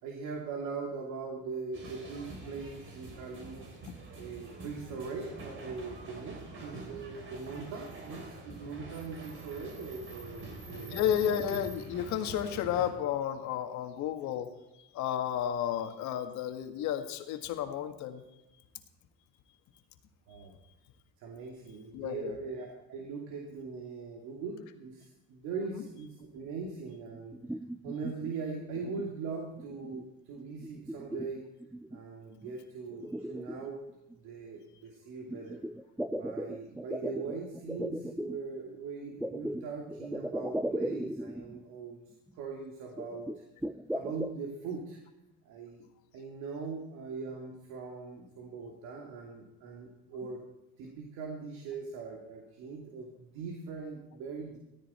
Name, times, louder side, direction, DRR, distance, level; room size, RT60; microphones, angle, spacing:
voice 1, 0.0-3.6 4.1-11.0 20.3-20.5 21.2-27.4 27.8-31.4 31.9-33.8 34.1-35.6 36.1-42.0 42.3-43.4 43.9-45.0 45.4-45.8 46.1-50.4 50.8-54.6, right 4 dB, 75° right, 0 dB, 2.7 m, -41 dB
sound 1, 1.7-12.9, right 2 dB, 45° right, 4.0 m, -46 dB
voice 2, 10.9-14.5 14.9-18.2 21.9-22.3, left 10 dB, 70° left, 6 dB, 1.8 m, -32 dB
sound 2, 27.1-28.3 28.8-29.1 29.6-30.0 30.4-32.0 32.4-32.5 32.9-34.2 35.3-38.4 39.2-41.6 41.9-42.0 42.3-42.4 43.0-44.4, right 1 dB, 5° right, 0.5 m, -37 dB
17.0 x 14.0 x 4.3 m, 0.94 s
cardioid pair, 115°, 30 cm